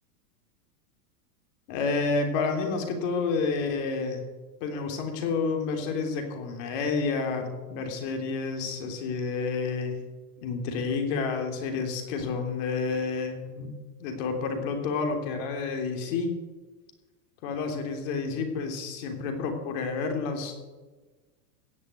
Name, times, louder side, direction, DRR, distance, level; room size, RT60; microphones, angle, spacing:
voice 1, 1.7-4.2 4.6-10.0 10.4-13.7 14.0-16.3 17.4-20.5, left 4 dB, 50° left, 5 dB, 3.3 m, -29 dB
17.5 x 6.7 x 8.4 m, 1.3 s
supercardioid pair, 140°, 46 cm